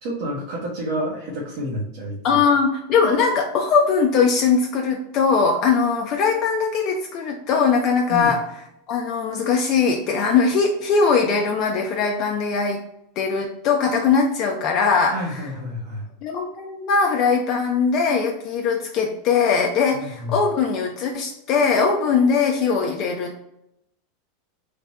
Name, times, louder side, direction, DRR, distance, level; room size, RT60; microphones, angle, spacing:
voice 1, 0.0-2.4 8.1-8.3 15.1-16.1 19.9-20.4, equal, 70° right, -4 dB, 0.9 m, -29 dB
voice 2, 2.2-8.4 8.9-12.8 13.2-15.4 16.2-23.4, left 5 dB, 45° left, 1 dB, 0.4 m, -20 dB
3.3 x 2.2 x 4.0 m, 0.80 s
supercardioid pair, 135°, 0 cm